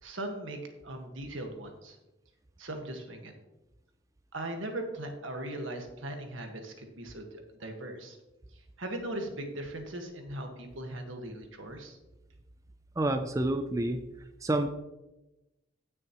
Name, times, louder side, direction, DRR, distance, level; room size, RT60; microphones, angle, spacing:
voice 1, 0.0-2.0 2.6-3.3 4.3-8.2 8.8-12.0, right 1 dB, 80° right, 4 dB, 1.6 m, -39 dB
voice 2, 13.0-14.0 14.4-14.7, right 1 dB, 15° right, 8 dB, 0.4 m, -28 dB
16.0 x 6.4 x 3.0 m, 0.99 s
head